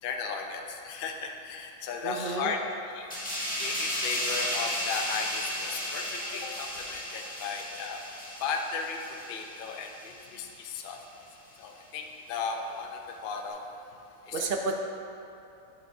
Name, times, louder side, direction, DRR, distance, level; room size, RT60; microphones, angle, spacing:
voice 1, 0.0-2.6 2.8-3.1 3.6-8.0 8.4-9.0 9.3-11.0 11.6-13.6 14.3-14.5, left 5 dB, 60° left, 3 dB, 0.6 m, -35 dB
voice 2, 2.0-2.5 3.1-3.2 6.2-6.3 7.2-7.4 14.3-14.8, right 3 dB, 70° right, 2 dB, 0.5 m, -32 dB
sound 1, 3.1-10.3 10.6-10.8, equal, 5° left, 1.2 m, -34 dB
8.8 x 5.9 x 2.7 m, 2.7 s
omnidirectional pair, 1.4 m